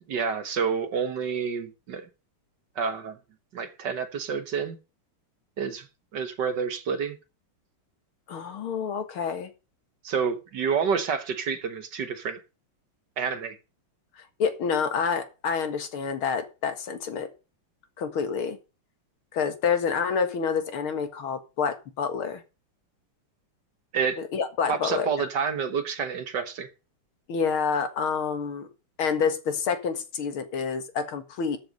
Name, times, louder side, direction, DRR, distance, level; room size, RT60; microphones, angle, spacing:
voice 1, 0.1-2.1 2.8-3.2 3.5-4.8 5.6-5.9 6.1-7.2 10.0-12.4 13.2-13.6 23.9-24.2 24.7-26.7, right 6 dB, 55° right, 1.6 m, -28 dB
voice 2, 8.3-9.5 14.4-17.3 18.0-18.6 19.3-22.4 24.2-25.3 27.3-28.7 29.0-31.6, left 6 dB, 70° left, 2.5 m, -28 dB
13.0 x 7.9 x 5.3 m
omnidirectional pair, 2.4 m